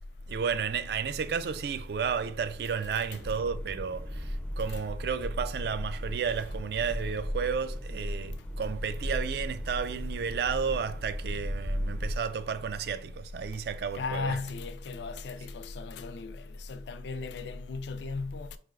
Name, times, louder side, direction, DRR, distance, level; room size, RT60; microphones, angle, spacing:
voice 1, 0.3-14.4, right 6 dB, 60° right, 0.3 m, -32 dB
sound 1, 3.1-12.2, equal, 10° left, 0.4 m, -36 dB
voice 2, 13.9-18.6, left 4 dB, 75° left, 0.4 m, -36 dB
4.6 x 3.2 x 2.4 m
head